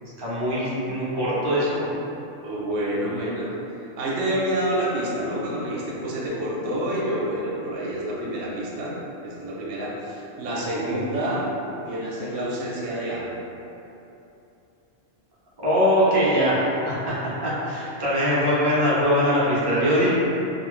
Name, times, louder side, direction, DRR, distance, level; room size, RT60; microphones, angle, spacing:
voice 1, 0.0-1.8 10.9-11.0 15.6-20.1, equal, 30° right, -9 dB, 0.4 m, -22 dB
voice 2, 2.4-3.5 3.8-8.9 9.2-11.5 11.9-13.5, right 1 dB, 65° right, -5 dB, 0.8 m, -28 dB
2.5 x 2.3 x 3.0 m, 2.9 s
omnidirectional pair, 1.3 m